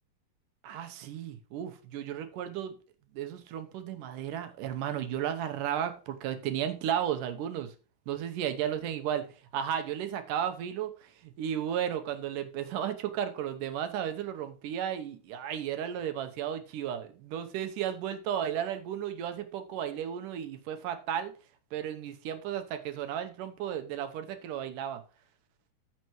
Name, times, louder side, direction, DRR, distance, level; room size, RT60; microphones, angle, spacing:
voice 1, 0.6-2.8 3.1-7.7 8.1-9.3 9.5-21.3 21.7-25.0, right 9 dB, 75° right, 8 dB, 2.5 m, -34 dB
14.0 x 5.9 x 3.1 m, 0.35 s
omnidirectional pair, 3.9 m